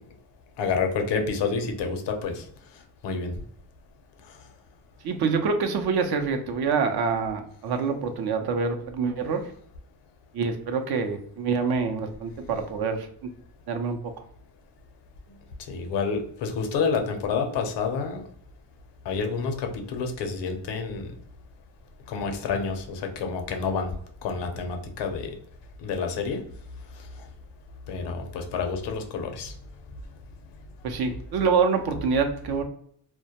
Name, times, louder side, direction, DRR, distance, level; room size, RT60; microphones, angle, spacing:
voice 1, 0.6-2.4 3.0-3.3 15.7-18.2 19.1-21.1 22.1-23.9 24.2-25.3 25.8-26.4 27.9-29.5, left 5 dB, 80° left, 5 dB, 0.6 m, -28 dB
voice 2, 5.0-9.4 10.3-13.1 13.7-14.0 30.8-32.6, right 5 dB, 60° right, 5 dB, 0.6 m, -26 dB
2.2 x 2.1 x 2.8 m, 0.63 s
cardioid pair, 85°, 42 cm